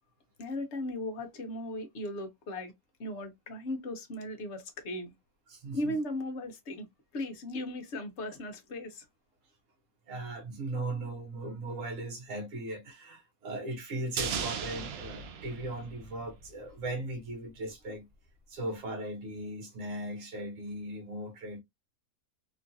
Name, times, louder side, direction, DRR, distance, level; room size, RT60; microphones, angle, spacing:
voice 1, 0.4-2.7 3.0-5.1 5.7-6.9 7.1-9.0, left 1 dB, 55° left, 0.9 m, -37 dB
voice 2, 5.5-6.0 10.1-18.1 18.5-21.6, right 1 dB, 60° right, 1.1 m, -38 dB
sound 1, 14.2-16.6 16.8-16.9, right 6 dB, 85° right, 0.5 m, -36 dB
3.0 x 2.4 x 2.6 m
omnidirectional pair, 1.6 m